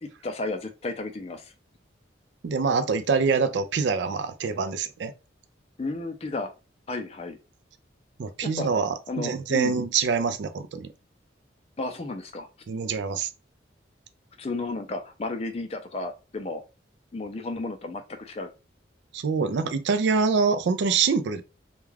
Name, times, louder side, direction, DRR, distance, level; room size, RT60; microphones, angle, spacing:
voice 1, 0.0-1.5 5.8-6.5 6.9-7.4 8.6-8.7 9.1-9.8 11.8-12.5 14.4-16.6 17.1-18.5, left 2 dB, 30° left, 0.4 m, -33 dB
voice 2, 2.4-5.1 8.2-10.9 12.7-13.3 19.1-21.4, right 5 dB, 70° right, 0.3 m, -25 dB
2.3 x 2.2 x 3.2 m
head